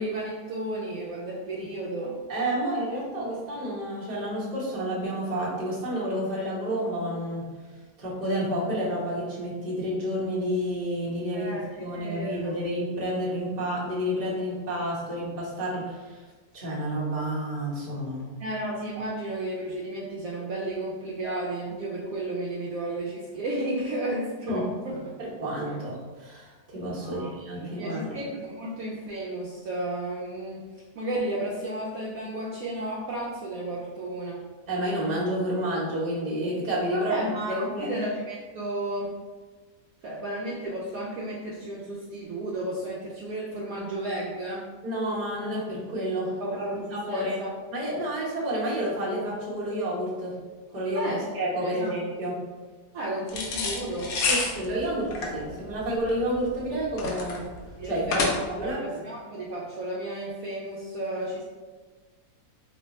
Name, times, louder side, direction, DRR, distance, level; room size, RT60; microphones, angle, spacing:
voice 1, 0.0-2.2 11.3-11.7 11.9-12.5 18.4-25.0 27.0-30.6 31.0-34.4 36.9-39.2 40.0-44.7 46.4-47.5 50.9-51.2 51.5-51.9 52.9-54.1 57.8-58.3 58.6-61.4, right 1 dB, 70° right, -5 dB, 0.9 m, -33 dB
voice 2, 2.3-7.5 8.0-16.2 16.5-18.2 24.5-24.7 25.2-28.2 34.7-37.9 44.8-46.3 46.9-47.4 47.7-50.3 50.7-52.4 54.3-57.4 57.8-58.8, equal, 30° right, -7 dB, 0.9 m, -30 dB
sound 1, 53.3-58.7, left 3 dB, 70° left, 1.0 m, -29 dB
3.2 x 2.2 x 4.0 m, 1.4 s
omnidirectional pair, 1.7 m